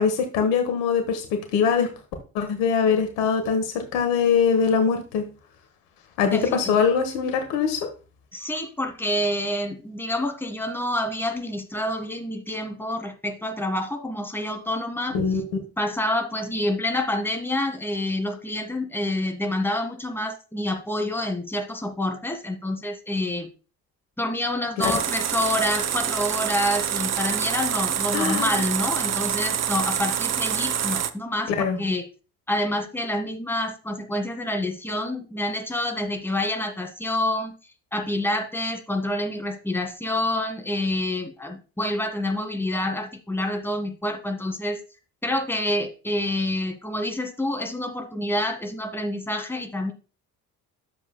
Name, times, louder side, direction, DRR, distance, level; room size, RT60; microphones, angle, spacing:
voice 1, 0.0-1.9 2.3-5.2 6.2-7.9 15.1-15.5 24.8-25.0 28.1-28.6 31.5-31.8, left 6 dB, 70° left, 6 dB, 1.4 m, -22 dB
voice 2, 6.2-6.8 8.3-15.2 15.8-23.5 24.2-32.0 32.5-37.6 37.9-44.8 45.2-49.9, left 1 dB, 5° left, 4 dB, 1.8 m, -27 dB
sound 1, 24.8-31.1, right 9 dB, 35° right, 0.7 m, -26 dB
10.5 x 7.3 x 2.2 m, 0.34 s
figure-of-eight pair, 50°, 45 cm